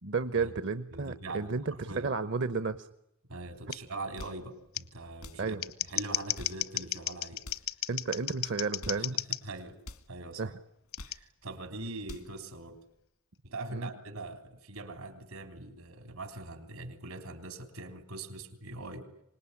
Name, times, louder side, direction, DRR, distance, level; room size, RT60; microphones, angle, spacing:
voice 1, 0.0-2.9 5.4-5.6 7.9-9.2 10.4-10.5 13.7-13.9, right 4 dB, 55° right, 13 dB, 0.9 m, -32 dB
voice 2, 0.9-2.1 3.3-7.4 9.0-9.8 10.1-10.5 11.0-12.8 13.4-19.1, right 2 dB, 80° right, 7 dB, 3.5 m, -42 dB
Scissors, 3.7-3.8 4.7-4.8 5.5-9.4 10.9-11.2, left 13 dB, 70° left, 1.0 m, -34 dB
sound 1, 4.0-4.5 5.1-5.5 6.2-6.7 7.4-7.7 8.6-9.1 9.8-10.1 10.7-11.3 11.8-12.4, left 2 dB, 85° left, 2.0 m, -47 dB
25.5 x 20.5 x 9.8 m, 0.86 s
head